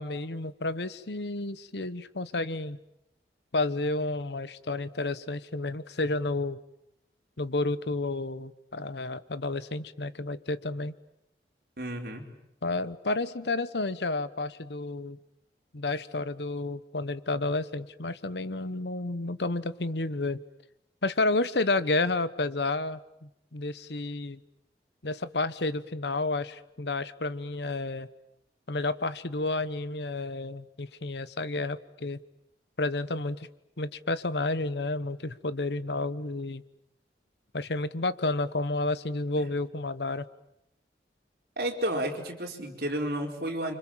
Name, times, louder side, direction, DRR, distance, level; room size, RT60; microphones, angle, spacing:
voice 1, 0.0-2.8 3.5-6.6 7.4-10.9 12.6-15.2 15.7-20.4 21.0-24.4 25.0-28.1 28.7-32.2 32.8-33.5 33.8-36.6 37.5-40.3, left 2 dB, 75° left, 14 dB, 1.1 m, -31 dB
voice 2, 11.8-12.2 39.4-39.5 41.6-43.8, right 1 dB, 55° right, 1 dB, 4.7 m, -32 dB
30.0 x 26.0 x 7.5 m, 0.81 s
head